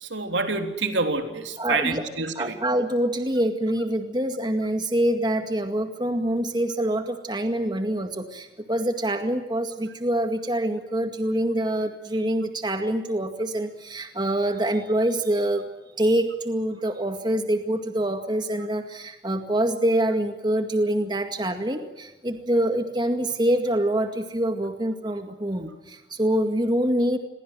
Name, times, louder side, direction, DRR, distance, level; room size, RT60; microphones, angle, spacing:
voice 1, 0.0-2.5, right 3 dB, 80° right, 6 dB, 3.6 m, -27 dB
voice 2, 1.6-2.1 2.4-15.7 16.0-27.2, right 1 dB, 25° right, 6 dB, 2.0 m, -25 dB
29.5 x 23.0 x 7.6 m, 1.1 s
head